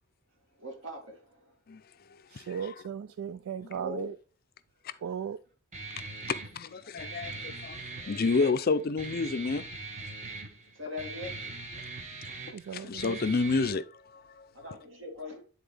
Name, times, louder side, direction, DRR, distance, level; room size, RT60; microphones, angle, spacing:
voice 1, 0.5-1.5 3.7-4.1 6.2-6.4 6.8-6.9 10.7-11.5 14.5-15.4, left 2 dB, 65° right, 2.4 m, -41 dB
voice 2, 2.3-4.2 5.0-5.4 12.5-13.2, right 7 dB, 80° right, 0.3 m, -37 dB
Guitar, 5.7-13.7, right 3 dB, 35° right, 1.0 m, -41 dB
voice 3, 6.3-9.6 12.7-14.5, left 4 dB, 45° left, 0.5 m, -30 dB
10.0 x 4.1 x 3.4 m
head